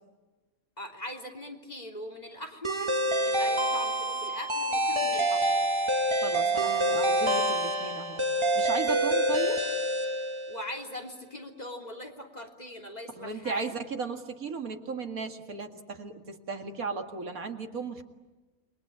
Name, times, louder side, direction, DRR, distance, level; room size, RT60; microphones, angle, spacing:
voice 1, 0.8-5.7 10.5-13.7, left 1 dB, 25° left, 4 dB, 3.3 m, -41 dB
sound 1, 2.6-10.8, right 1 dB, 20° right, 1.8 m, -27 dB
voice 2, 6.2-8.2 8.6-9.6 13.1-18.0, right 4 dB, 75° right, 5 dB, 2.5 m, -36 dB
29.0 x 22.5 x 8.8 m, 1.1 s
omnidirectional pair, 1.5 m